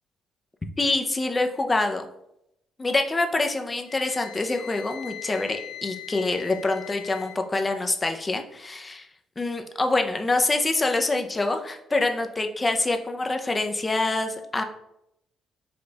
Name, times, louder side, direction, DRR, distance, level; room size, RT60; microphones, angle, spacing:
voice 1, 0.8-2.0 2.8-9.1 9.4-14.6, left 2 dB, 20° left, 5 dB, 0.5 m, -25 dB
Wind instrument woodwind instrument, 3.9-7.4, left 13 dB, 90° left, 0.5 m, -41 dB
5.0 x 2.3 x 3.9 m, 0.81 s
cardioid pair, 105°, 0 cm